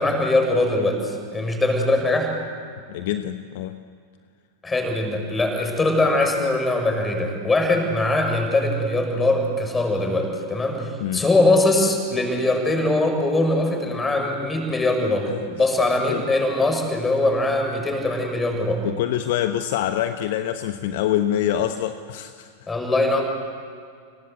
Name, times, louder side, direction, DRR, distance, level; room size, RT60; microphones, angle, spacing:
voice 1, 0.0-2.3 4.6-18.8 22.7-23.2, left 2 dB, 15° left, 4 dB, 7.1 m, -22 dB
voice 2, 2.9-3.8 11.0-11.3 15.3-15.4 16.1-16.2 18.8-22.7, left 11 dB, 50° left, 9 dB, 1.1 m, -25 dB
30.0 x 21.0 x 8.3 m, 2.1 s
figure-of-eight pair, 90°, 0 cm